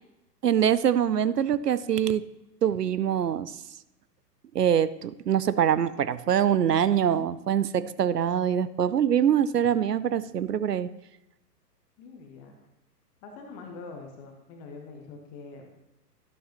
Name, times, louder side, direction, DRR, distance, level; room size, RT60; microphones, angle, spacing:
voice 1, 0.4-2.2 2.6-3.5 4.5-10.9, right 9 dB, 70° right, 16 dB, 0.6 m, -24 dB
voice 2, 12.0-12.5 13.2-15.7, left 4 dB, 10° left, 2 dB, 0.5 m, -44 dB
11.5 x 11.5 x 2.9 m, 0.92 s
figure-of-eight pair, 115°, 49 cm